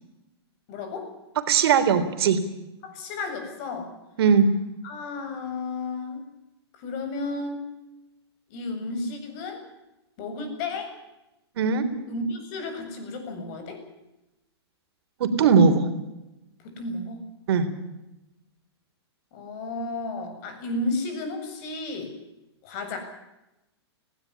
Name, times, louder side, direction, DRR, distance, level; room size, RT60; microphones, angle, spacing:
voice 1, 0.7-1.1 2.8-3.9 4.8-6.2 6.8-7.7 8.5-9.6 10.2-10.9 12.1-13.8 16.6-17.2 19.3-22.1 22.6-23.0, left 2 dB, 45° left, 6 dB, 7.3 m, -33 dB
voice 2, 1.5-2.4 4.2-4.5 11.6-11.9 15.2-15.9 17.5-17.7, right 6 dB, 65° right, 8 dB, 3.6 m, -19 dB
19.0 x 17.0 x 10.0 m, 0.94 s
hypercardioid pair, 130°, 14 cm